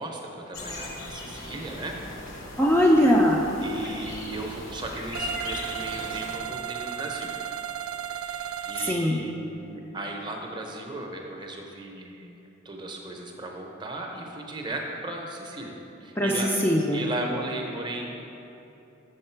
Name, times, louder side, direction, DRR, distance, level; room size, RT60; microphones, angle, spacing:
voice 1, 0.0-2.0 3.6-7.3 8.1-15.7 16.0-16.5 16.9-18.0, right 2 dB, 20° right, 1 dB, 0.7 m, -36 dB
sound 1, 0.5-6.4, left 1 dB, 75° left, 1.0 m, -38 dB
voice 2, 2.6-3.5 8.8-9.2 16.2-17.0, equal, 10° left, -3 dB, 0.4 m, -21 dB
sound 2, 5.1-9.0, right 10 dB, 75° right, 0.4 m, -34 dB
6.6 x 6.4 x 4.4 m, 2.9 s
head